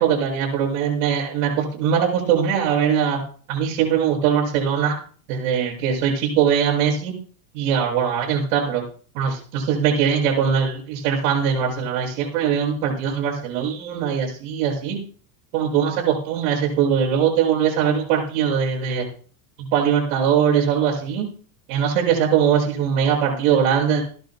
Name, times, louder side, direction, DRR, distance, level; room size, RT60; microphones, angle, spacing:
voice 1, 0.0-3.2 3.5-5.0 5.3-7.1 7.5-8.8 9.1-15.0 15.5-19.1 19.6-21.3 21.7-24.0, right 8 dB, 80° right, 0 dB, 6.7 m, -21 dB
28.0 x 12.0 x 2.2 m, 0.43 s
cardioid pair, 145°, 40 cm